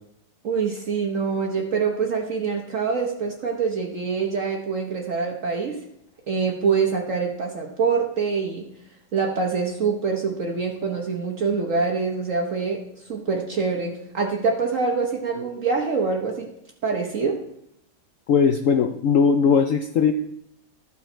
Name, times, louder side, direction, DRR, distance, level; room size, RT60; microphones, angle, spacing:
voice 1, 0.4-5.8 6.3-8.7 9.1-16.5 16.8-17.4, right 5 dB, 55° right, 1 dB, 1.3 m, -25 dB
voice 2, 18.3-20.1, left 6 dB, 65° left, 6 dB, 0.8 m, -19 dB
12.5 x 7.1 x 4.4 m, 0.76 s
omnidirectional pair, 1.8 m